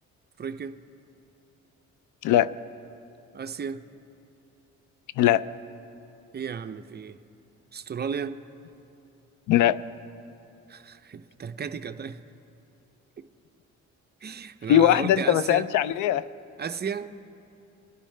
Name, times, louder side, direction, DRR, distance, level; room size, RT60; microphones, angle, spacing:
voice 1, 0.4-0.8 3.3-3.8 6.3-7.2 7.7-8.4 10.7-12.2 13.2-13.3 14.2-15.7 16.6-17.1, right 6 dB, 35° right, 10 dB, 0.6 m, -34 dB
voice 2, 9.5-9.8 14.7-16.2, left 11 dB, 85° left, 17 dB, 0.5 m, -20 dB
24.5 x 10.0 x 3.3 m, 2.8 s
cardioid pair, 90°, 30 cm